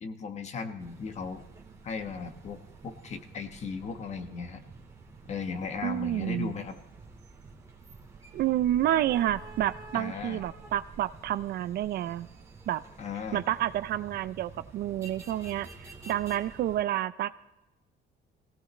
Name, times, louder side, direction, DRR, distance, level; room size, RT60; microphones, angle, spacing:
voice 1, 0.0-1.4 1.8-4.6 5.3-6.8 9.9-10.4 13.0-13.4, left 5 dB, 35° left, 7 dB, 1.1 m, -37 dB
sound 1, 0.8-16.8, right 3 dB, 15° right, 2.0 m, -49 dB
voice 2, 5.8-6.5 8.3-12.3 12.7-12.8 13.3-17.4, right 12 dB, 60° right, 15 dB, 0.4 m, -29 dB
23.0 x 17.0 x 3.2 m, 0.96 s
cardioid pair, 175°, 19 cm